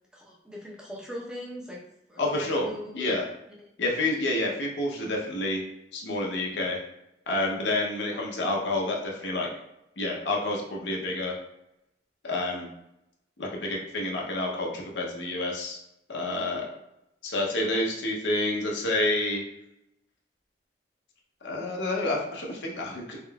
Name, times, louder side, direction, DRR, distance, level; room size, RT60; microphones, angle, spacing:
voice 1, 0.1-1.8 2.1-3.2 8.0-8.2 16.4-16.7, left 1 dB, 5° right, -4 dB, 0.7 m, -41 dB
voice 2, 2.2-2.7 2.9-3.2 3.8-5.6 5.9-6.8 7.3-9.5 10.0-11.4 12.2-12.7 13.4-15.8 16.1-16.7 17.2-19.4 21.4-23.2, left 2 dB, 80° left, -1 dB, 0.7 m, -29 dB
3.7 x 3.6 x 2.2 m, 0.83 s
head